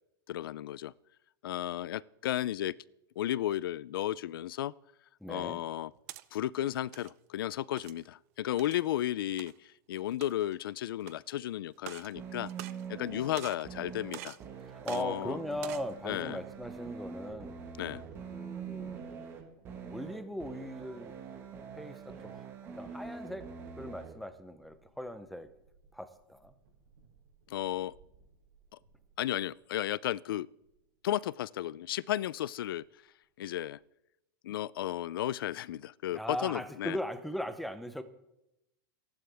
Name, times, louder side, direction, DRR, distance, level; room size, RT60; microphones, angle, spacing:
voice 1, 0.3-0.9 1.4-2.7 3.2-4.7 5.3-5.9 6.3-12.5 12.9-14.4 14.9-15.4 16.1-16.4 17.8-18.0 27.5-27.9 29.2-30.5 31.0-32.8 33.4-33.8 34.4-37.0, left 13 dB, 90° left, 22 dB, 0.5 m, -34 dB
voice 2, 5.2-5.6 14.7-17.6 18.3-19.2 19.8-21.1 21.7-22.5 22.7-23.5 23.8-25.5 25.9-26.5 36.1-38.0, equal, ahead, 10 dB, 0.7 m, -39 dB
sound 1, 5.7-6.2 6.8-7.1 7.8-8.0 8.6-8.8 9.4-9.5 10.1-10.5 11.0-11.1 11.8-12.1 12.5-13.1 13.3-13.7 14.1-14.4 14.8-15.0 15.5-15.9, right 16 dB, 45° right, 0.6 m, -45 dB
sound 2, 12.2-24.2, right 6 dB, 20° right, 1.4 m, -44 dB
Bird vocalization bird call bird song / Wind / Thunder, 17.4-31.3 31.9-32.0 32.4-32.8 33.2-33.8, right 4 dB, 60° right, 7.1 m, -62 dB
28.5 x 11.5 x 3.5 m, 0.88 s
supercardioid pair, 175°, 12 cm